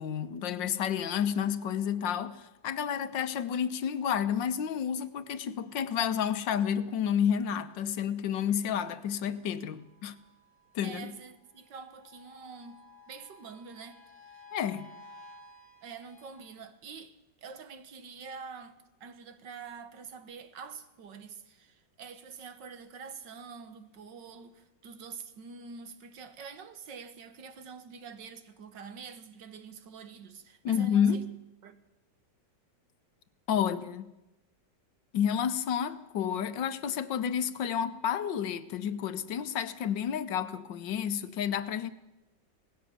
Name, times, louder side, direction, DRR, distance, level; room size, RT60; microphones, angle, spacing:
voice 1, 0.0-10.2 10.7-11.1 14.5-14.9 30.6-31.3 33.5-34.1 35.1-41.9, left 8 dB, 80° left, 1.7 m, -30 dB
sound 1, 1.2-16.6, left 2 dB, 50° left, 3.7 m, -58 dB
voice 2, 10.8-14.5 15.8-31.2 31.6-31.8, right 5 dB, 75° right, 2.0 m, -46 dB
18.5 x 16.0 x 8.7 m
omnidirectional pair, 2.0 m